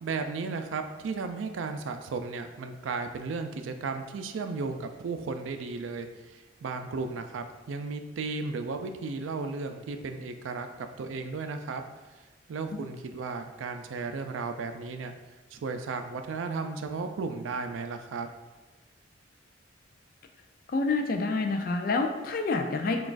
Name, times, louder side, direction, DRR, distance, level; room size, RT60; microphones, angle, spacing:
voice 1, 0.0-11.8 12.5-15.1 15.5-18.3, right 4 dB, 85° right, 7 dB, 0.4 m, -34 dB
voice 2, 20.7-23.1, left 3 dB, 45° left, 4 dB, 0.3 m, -28 dB
5.9 x 2.3 x 2.4 m, 1.2 s
head